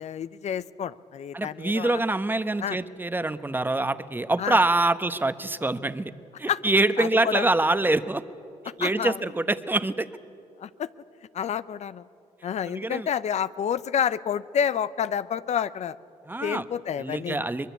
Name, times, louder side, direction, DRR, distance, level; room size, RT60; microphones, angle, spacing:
voice 1, 0.0-2.0 2.6-2.8 4.4-4.6 6.5-6.6 7.0-7.4 8.8-9.2 10.6-10.9 11.3-12.1 12.4-16.0 16.4-17.5, left 8 dB, 60° left, 15 dB, 0.6 m, -29 dB
voice 2, 1.3-6.1 6.4-8.2 8.8-10.1 12.7-13.1 16.3-16.6 17.0-17.7, right 2 dB, 15° right, 12 dB, 1.1 m, -25 dB
23.5 x 21.0 x 8.2 m, 2.6 s
supercardioid pair, 65°, 13 cm